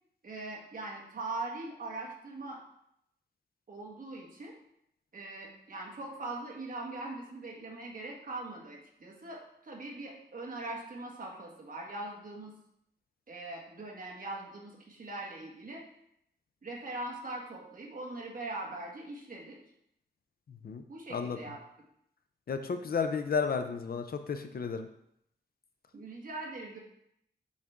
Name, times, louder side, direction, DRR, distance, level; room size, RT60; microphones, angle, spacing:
voice 1, 0.2-2.6 3.7-4.5 5.1-12.5 13.3-15.9 16.6-19.6 20.9-21.6 25.9-26.8, right 2 dB, 50° right, -2 dB, 1.5 m, -41 dB
voice 2, 20.5-20.8 21.1-21.4 22.5-24.9, left 5 dB, 55° left, 8 dB, 0.5 m, -32 dB
6.3 x 5.7 x 3.6 m, 0.75 s
wide cardioid pair, 175°, 19 cm